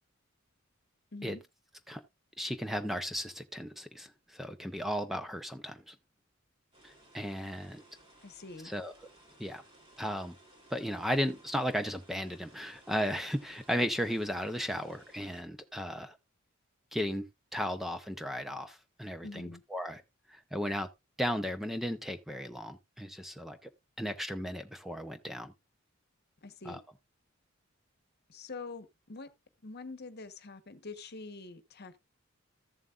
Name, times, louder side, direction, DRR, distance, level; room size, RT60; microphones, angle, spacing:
voice 1, 1.1-1.4 7.4-7.5 8.2-8.7 19.2-19.6 26.4-26.8 28.3-29.3 29.6-32.0, left 3 dB, 50° left, 1.1 m, -45 dB
voice 2, 2.4-5.9 6.8-7.8 8.6-8.9 9.4-9.6 10.0-10.4 10.7-16.2 16.9-17.3 17.5-20.0 20.3-20.9 21.2-23.7 24.0-25.5 26.7-26.8, equal, ahead, 0.6 m, -35 dB
sound 1, 6.7-15.4, right 1 dB, 25° right, 3.3 m, -60 dB
14.0 x 7.4 x 2.4 m
head